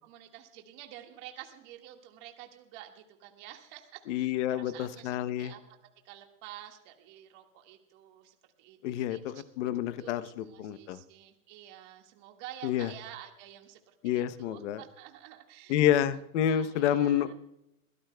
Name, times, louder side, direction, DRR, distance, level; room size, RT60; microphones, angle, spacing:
voice 1, 0.0-5.6 6.0-9.4 9.8-13.8 14.0-17.3, right 12 dB, 40° right, 3 dB, 1.8 m, -50 dB
voice 2, 4.1-5.5 8.8-11.0 12.6-12.9 14.0-14.8 15.7-17.3, left 10 dB, 50° left, 13 dB, 0.9 m, -29 dB
22.5 x 16.5 x 2.3 m, 0.84 s
supercardioid pair, 165°, 44 cm